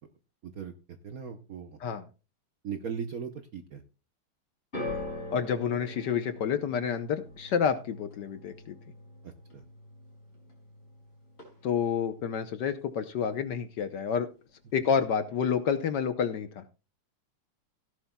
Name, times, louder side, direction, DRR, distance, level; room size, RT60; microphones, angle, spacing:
voice 1, 0.4-1.8 2.6-3.8 9.2-9.6, right 7 dB, 60° right, 7 dB, 1.0 m, -39 dB
sound 1, 4.7-11.0 11.3-11.9 12.7-12.8, left 2 dB, 25° left, 6.0 m, -42 dB
voice 2, 5.3-8.7 11.6-14.3 14.7-16.6, left 7 dB, 65° left, 10 dB, 1.2 m, -29 dB
16.5 x 11.0 x 2.2 m, 0.31 s
omnidirectional pair, 2.4 m